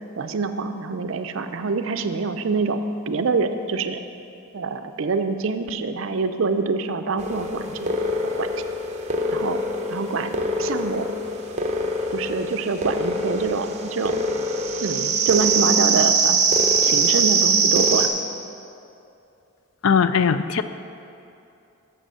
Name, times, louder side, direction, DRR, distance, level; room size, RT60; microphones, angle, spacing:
voice 1, 0.2-4.0 4.5-7.9 8.2-8.5 9.3-9.6 9.9-10.3 10.6-11.1 12.1-14.2 14.8-16.4 16.8-18.1, right 4 dB, 65° right, 9 dB, 0.5 m, -25 dB
sound 1, 7.2-18.1, right 3 dB, 30° right, 0.7 m, -23 dB
voice 2, 19.8-20.6, left 6 dB, 65° left, 12 dB, 0.4 m, -19 dB
7.8 x 7.4 x 6.3 m, 2.7 s
head